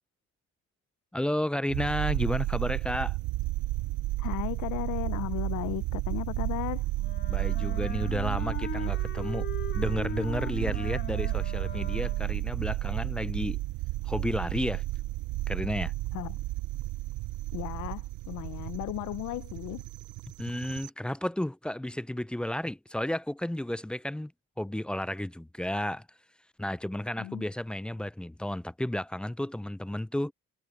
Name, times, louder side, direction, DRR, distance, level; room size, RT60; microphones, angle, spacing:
voice 1, 1.1-3.2 7.3-9.5 9.7-13.6 14.0-14.8 15.5-15.9 20.4-24.3 24.6-26.1 26.6-30.3, left 1 dB, 5° left, 0.3 m, -32 dB
sound 1, 1.7-20.9, right 18 dB, 80° right, 0.5 m, -32 dB
voice 2, 4.2-6.9 16.1-16.4 17.5-19.8 27.2-27.4, left 16 dB, 85° left, 0.6 m, -35 dB
Wind instrument woodwind instrument, 7.0-12.4, left 6 dB, 40° left, 1.7 m, -40 dB
cardioid pair, 90°, 30 cm